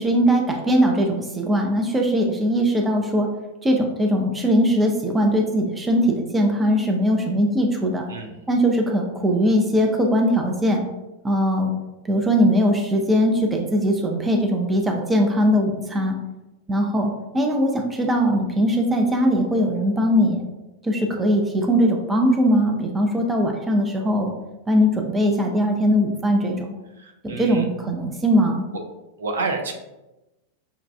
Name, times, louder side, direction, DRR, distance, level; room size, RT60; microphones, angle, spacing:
voice 1, 0.0-3.3 3.6-8.1 8.5-10.8 11.2-11.7 12.0-16.2 16.7-20.4 20.8-24.3 24.7-26.6 27.2-28.7, equal, 15° right, 1 dB, 0.5 m, -20 dB
voice 2, 8.1-8.4 27.0-27.6 29.2-29.7, right 3 dB, 65° right, 3 dB, 0.6 m, -29 dB
5.7 x 2.3 x 2.3 m, 1.0 s
figure-of-eight pair, 90°, 0 cm